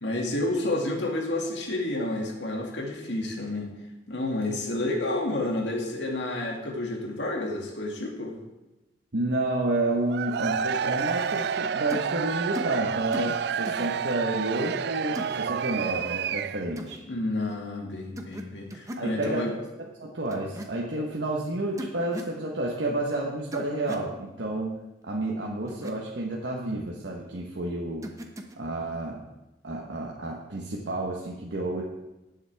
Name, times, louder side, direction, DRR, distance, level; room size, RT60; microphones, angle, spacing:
voice 1, 0.0-3.7 4.1-8.4 17.1-19.5 20.0-20.1 21.0-21.1, left 2 dB, 80° left, 0 dB, 2.2 m, -30 dB
voice 2, 9.1-17.0 19.0-19.6 20.0-24.8 25.0-28.1 28.6-29.2 29.6-31.8, right 2 dB, 80° right, -2 dB, 1.2 m, -30 dB
Cheering / Crowd, 10.1-16.8, right 7 dB, 60° right, 0.3 m, -29 dB
sound 1, 11.9-12.1 12.5-12.8 13.1-13.4 13.6-13.9 15.1-15.4 16.8-17.0 18.2-18.4 18.7-19.1 20.3-20.7 21.8-22.3 23.5-24.1 25.7-25.9 28.0-28.5, equal, 20° right, 0.9 m, -37 dB
18.0 x 7.3 x 3.5 m, 1.0 s
head